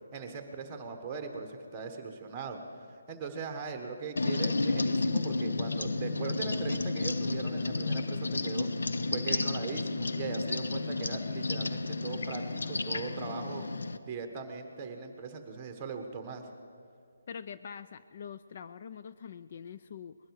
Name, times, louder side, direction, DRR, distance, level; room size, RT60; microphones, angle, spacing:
voice 1, 0.1-2.6 3.1-8.7 9.1-13.6 14.0-16.5, right 5 dB, 15° right, 5 dB, 1.3 m, -40 dB
sound 1, 4.2-14.0, left 3 dB, 85° left, 0.7 m, -32 dB
voice 2, 17.3-20.2, left 7 dB, 40° left, 12 dB, 0.3 m, -44 dB
20.5 x 12.0 x 4.7 m, 2.3 s
hypercardioid pair, 170°, 0 cm